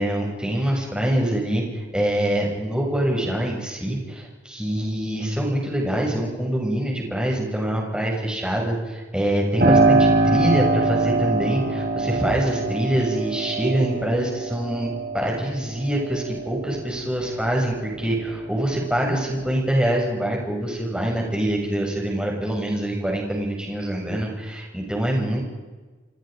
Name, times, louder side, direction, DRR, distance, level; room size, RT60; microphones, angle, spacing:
voice 1, 0.0-14.9 15.1-25.4, right 1 dB, 5° right, -1 dB, 7.4 m, -25 dB
Piano, 9.6-18.0 18.5-19.5, right 2 dB, 55° right, 6.8 m, -23 dB
30.0 x 25.5 x 5.3 m, 1.3 s
head